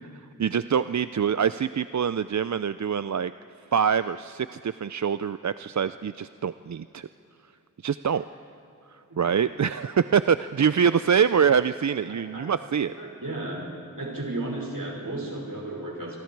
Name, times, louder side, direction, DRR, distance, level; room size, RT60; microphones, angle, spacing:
voice 1, 0.4-3.3 3.7-7.1 7.8-8.2 8.9-12.9, right 7 dB, 60° right, 13 dB, 0.4 m, -25 dB
voice 2, 9.1-9.5 10.8-10.9 12.1-12.5 12.9-13.7 13.9-16.2, right 2 dB, 75° right, -1 dB, 5.4 m, -34 dB
27.0 x 23.5 x 4.7 m, 2.9 s
wide cardioid pair, 50°, 33 cm